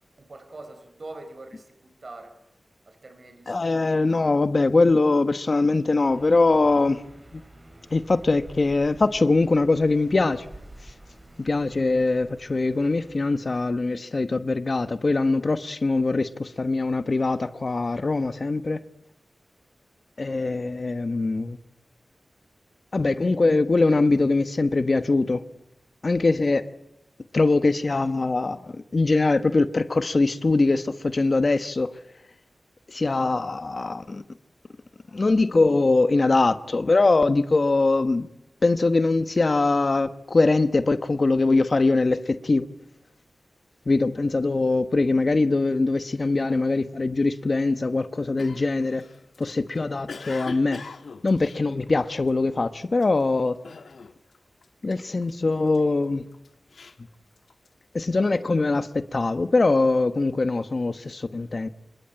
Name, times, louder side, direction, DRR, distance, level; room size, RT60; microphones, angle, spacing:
voice 1, 0.2-2.4 2.9-3.8 60.7-60.8, right 2 dB, 50° right, 4.3 m, -44 dB
voice 2, 3.5-7.0 7.3-7.4 7.9-10.4 11.4-18.8 20.2-21.6 22.9-25.4 26.0-26.6 27.3-31.9 32.9-34.2 35.1-38.3 38.6-42.7 43.9-49.0 49.4-50.8 51.2-53.6 54.8-56.2 57.9-61.7, left 3 dB, 45° left, 1.1 m, -22 dB
sound 1, 6.1-13.2, right 1 dB, 35° right, 6.4 m, -48 dB
Cough, 48.4-52.5 52.9-53.3 53.6-54.4 54.6-55.8 56.3-57.8, left 4 dB, 80° left, 1.6 m, -41 dB
26.5 x 21.5 x 8.9 m
wide cardioid pair, 80°, 0 cm